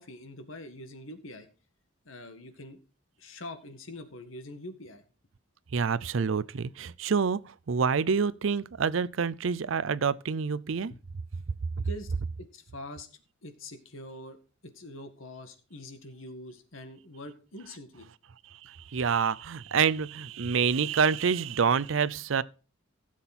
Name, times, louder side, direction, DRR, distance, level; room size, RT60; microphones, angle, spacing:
voice 1, 0.0-1.5 2.1-2.8 3.2-5.0 10.9-11.0 11.8-12.1 12.4-13.1 13.4-14.4 14.6-18.1 20.4-20.6, left 1 dB, 85° left, 1.8 m, -44 dB
voice 2, 5.7-10.9 11.8-11.9 18.6-22.4, right 6 dB, 70° right, 0.5 m, -27 dB
16.0 x 7.4 x 4.2 m
head